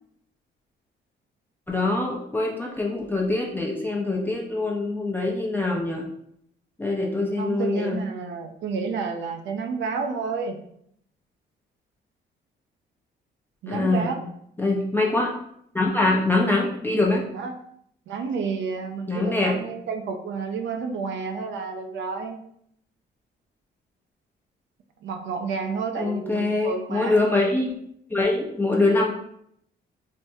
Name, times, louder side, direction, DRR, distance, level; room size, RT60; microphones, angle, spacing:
voice 1, 1.7-6.0 6.8-8.0 13.7-14.1 14.6-15.3 15.7-17.2 19.1-19.6 26.0-27.7 28.1-29.1, left 2 dB, 10° left, -3 dB, 0.5 m, -24 dB
voice 2, 7.4-10.6 13.6-14.2 17.3-17.6 18.1-22.4 25.0-27.2, right 5 dB, 70° right, 6 dB, 0.5 m, -30 dB
3.4 x 2.0 x 2.7 m, 0.71 s
cardioid pair, 90°, 20 cm